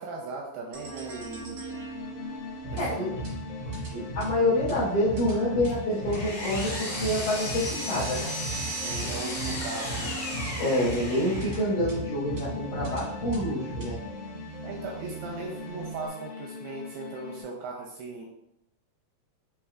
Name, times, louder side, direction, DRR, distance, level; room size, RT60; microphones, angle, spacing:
voice 1, 0.0-1.6 2.8-3.0 5.3-5.5 6.9-7.1 8.2-8.3 8.8-10.1 14.6-18.3, right 3 dB, 80° right, -1 dB, 2.4 m, -38 dB
sound 1, 0.7-16.1, right 2 dB, 65° right, 1.2 m, -37 dB
sound 2, 1.7-17.4, left 7 dB, 85° left, 3.0 m, -42 dB
voice 2, 2.8-3.1 3.9-8.3 10.6-14.0, left 1 dB, 70° left, -10 dB, 2.0 m, -27 dB
Power tool, 5.7-11.8, left 1 dB, 45° left, 2.0 m, -35 dB
7.2 x 3.1 x 2.3 m, 0.80 s
omnidirectional pair, 5.0 m